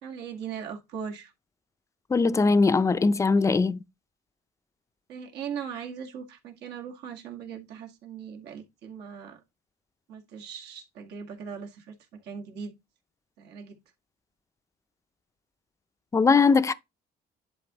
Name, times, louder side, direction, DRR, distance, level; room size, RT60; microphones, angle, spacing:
voice 1, 0.0-1.3 5.1-9.4 10.1-12.7 13.4-13.8, right 7 dB, 80° right, 2.0 m, -39 dB
voice 2, 2.1-3.8 16.1-16.7, left 4 dB, 20° left, 0.5 m, -20 dB
10.5 x 4.2 x 3.0 m
cardioid pair, 110°, 17 cm